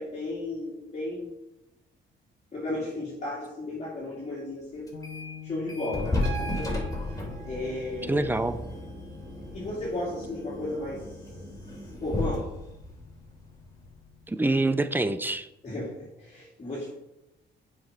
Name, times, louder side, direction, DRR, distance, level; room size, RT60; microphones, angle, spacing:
voice 1, 0.0-1.3 2.5-5.0 5.4-6.9 7.5-8.3 9.5-11.5 11.7-12.5 15.6-16.9, left 2 dB, 35° left, -6 dB, 2.5 m, -34 dB
sound 1, 4.9-14.6, left 11 dB, 70° left, 1.3 m, -49 dB
sound 2, 4.9-5.4 5.7-14.1, left 2 dB, 15° left, 3.0 m, -34 dB
Piano, 6.2-10.2 11.8-11.9, right 10 dB, 70° right, 1.0 m, -45 dB
voice 2, 8.1-8.6 14.3-15.5, right 2 dB, 10° right, 11 dB, 0.6 m, -25 dB
7.7 x 5.2 x 5.4 m, 0.94 s
cardioid pair, 90°, 20 cm